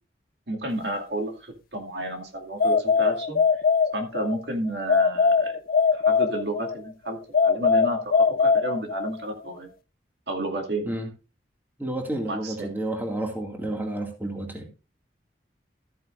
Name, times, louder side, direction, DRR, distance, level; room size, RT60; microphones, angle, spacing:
voice 1, 0.5-3.6 3.9-5.6 5.9-9.7 10.3-10.9 12.3-12.7, right 1 dB, 70° right, 2 dB, 2.3 m, -31 dB
sound 1, 2.6-4.4 4.9-6.8 7.3-9.2, left 5 dB, 50° left, 0.5 m, -21 dB
voice 2, 11.8-14.7, right 1 dB, 10° right, 2 dB, 2.2 m, -30 dB
14.0 x 9.2 x 2.5 m, 0.32 s
head